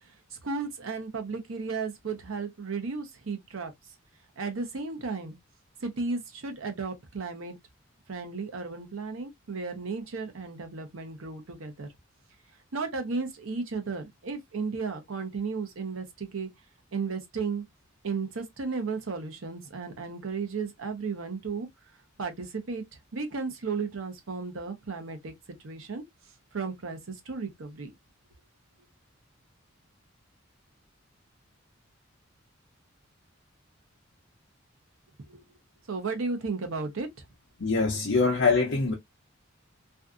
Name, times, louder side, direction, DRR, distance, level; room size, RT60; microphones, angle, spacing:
voice 1, 0.3-3.7 4.4-5.4 5.8-7.6 8.1-11.9 12.7-16.5 16.9-17.6 18.0-21.7 22.2-22.8 23.1-25.3 25.6-26.0 26.5-27.9 35.3-35.4 35.9-37.1, right 4 dB, 75° right, 0.7 m, -34 dB
voice 2, 37.6-38.9, left 4 dB, 60° left, 0.6 m, -24 dB
2.6 x 2.4 x 2.3 m
head